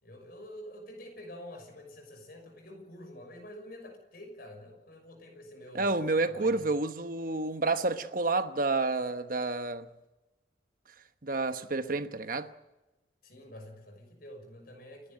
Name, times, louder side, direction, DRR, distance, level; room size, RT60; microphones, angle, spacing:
voice 1, 0.0-5.9 6.2-6.6 13.2-15.1, left 1 dB, 50° left, 6.2 m, -47 dB
voice 2, 5.7-9.9 11.2-12.5, right 3 dB, 45° right, 1.1 m, -29 dB
29.0 x 11.0 x 9.1 m
head